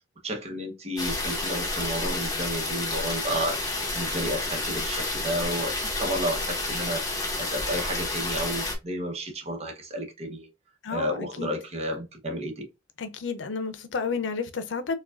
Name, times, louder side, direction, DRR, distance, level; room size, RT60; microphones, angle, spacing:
voice 1, 0.2-10.5 10.9-12.7, equal, 35° right, 0.9 m, -32 dB
sound 1, 1.0-8.8, left 2 dB, 20° left, 1.0 m, -30 dB
voice 2, 10.8-11.5 13.0-14.9, left 5 dB, 85° left, 0.5 m, -31 dB
4.6 x 2.3 x 2.4 m
head